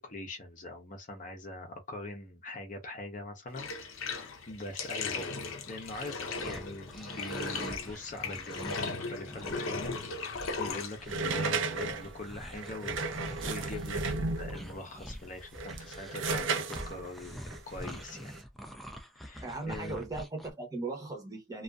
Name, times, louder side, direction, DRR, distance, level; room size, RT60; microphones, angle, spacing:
voice 1, 0.0-3.7 4.5-13.1 13.4-18.3 19.2-20.1, left 1 dB, 40° left, 0.6 m, -43 dB
Bathtub (filling or washing), 3.5-15.2, left 4 dB, 80° left, 0.7 m, -39 dB
sound 1, 5.9-20.5, equal, ahead, 0.3 m, -47 dB
sound 2, 11.1-14.7 15.4-18.4, right 3 dB, 65° right, 0.5 m, -34 dB
voice 2, 19.4-21.6, right 2 dB, 15° right, 0.8 m, -38 dB
2.5 x 2.3 x 2.2 m
head